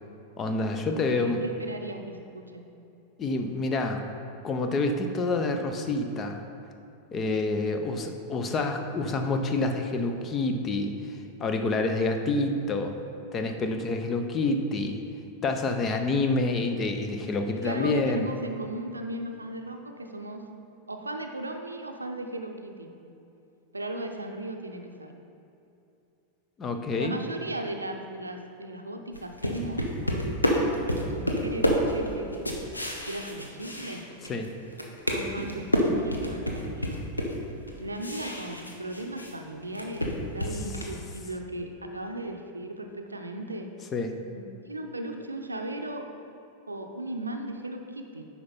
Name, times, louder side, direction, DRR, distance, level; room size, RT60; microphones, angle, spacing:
voice 1, 0.4-1.4 3.2-4.0 4.4-6.4 7.1-13.0 13.3-15.0 15.4-18.3 26.6-27.2 34.2-34.5 40.5-40.6 43.9-44.2, left 3 dB, 25° left, 6 dB, 0.7 m, -28 dB
voice 2, 0.9-2.6 17.5-20.4 20.9-22.9 23.7-25.1 27.0-30.4 31.1-32.5 33.1-34.0 35.1-37.0 37.8-43.7 44.3-46.1 46.7-48.3, right 1 dB, 80° right, 5 dB, 0.6 m, -37 dB
sound 1, 29.1-34.5 34.7-39.3 39.6-41.0, equal, 85° left, 0.9 m, -29 dB
9.5 x 5.8 x 4.1 m, 2.8 s
figure-of-eight pair, 90°, 0 cm